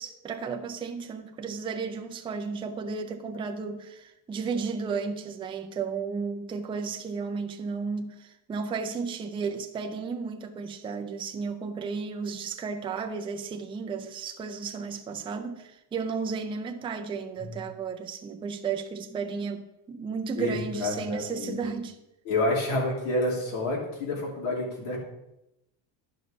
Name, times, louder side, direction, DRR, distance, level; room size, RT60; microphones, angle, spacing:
voice 1, 0.0-22.0, right 5 dB, 10° right, 0.4 m, -33 dB
voice 2, 20.4-21.6 22.2-25.0, left 2 dB, 80° left, 3.2 m, -29 dB
11.0 x 5.3 x 5.1 m
cardioid pair, 165°, 45 cm